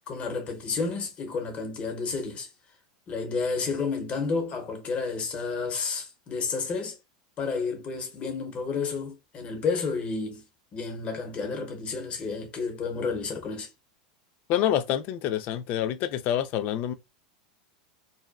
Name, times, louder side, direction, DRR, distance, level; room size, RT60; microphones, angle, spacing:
voice 1, 0.1-2.5 3.1-7.0 7.4-10.4 10.7-13.7, left 4 dB, 30° left, 0.9 m, -31 dB
voice 2, 14.5-16.9, left 11 dB, 50° left, 0.3 m, -27 dB
2.6 x 2.1 x 2.2 m
hypercardioid pair, 105°, 4 cm